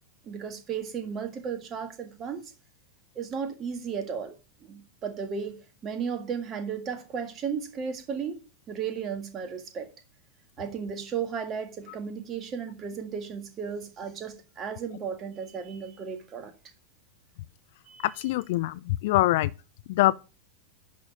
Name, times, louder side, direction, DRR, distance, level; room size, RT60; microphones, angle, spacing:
voice 1, 0.2-2.5 3.1-4.3 4.6-5.6 5.8-9.9 10.6-16.5 17.9-18.3, right 6 dB, 30° right, 1.7 m, -34 dB
voice 2, 18.2-19.5 19.9-20.1, left 17 dB, 50° left, 0.3 m, -24 dB
10.5 x 4.5 x 5.1 m
figure-of-eight pair, 90°, 0 cm